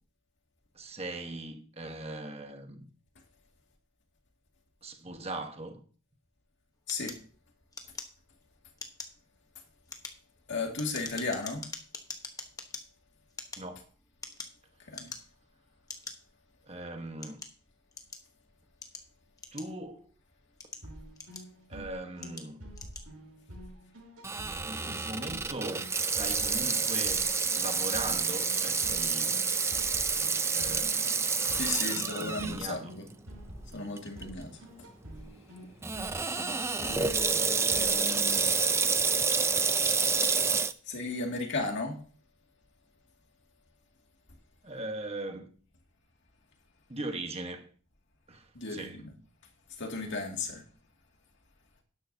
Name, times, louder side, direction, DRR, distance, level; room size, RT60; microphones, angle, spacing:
voice 1, 0.7-2.9 4.8-5.8 13.6-13.8 16.7-17.4 19.5-20.1 21.7-22.6 24.6-27.2 27.5-29.4 30.5-31.5 31.9-32.9 44.6-45.5 46.9-47.7 48.3-49.0, right 2 dB, 25° right, 1.2 m, -40 dB
sound 1, 6.9-8.4 8.7-9.2 9.7-12.8 13.3-14.6 14.9-15.4 15.9-16.1 16.8-18.3 18.8-20.0 20.4-21.7 22.2-22.5 22.7-23.1, left 4 dB, 15° left, 1.1 m, -43 dB
voice 2, 10.5-11.7 14.8-15.1 31.5-33.1 33.7-34.6 36.8-38.6 40.2-40.3 40.8-42.0 48.5-49.1 49.8-50.6, left 3 dB, 55° left, 2.2 m, -35 dB
sound 2, 20.8-38.5, equal, 80° right, 5.5 m, -48 dB
Water tap faucet / Sink (filling or washing), 24.2-32.6 33.1-33.2 34.0-34.2 35.8-40.7, right 5 dB, 10° right, 0.4 m, -28 dB
12.0 x 10.5 x 2.8 m
head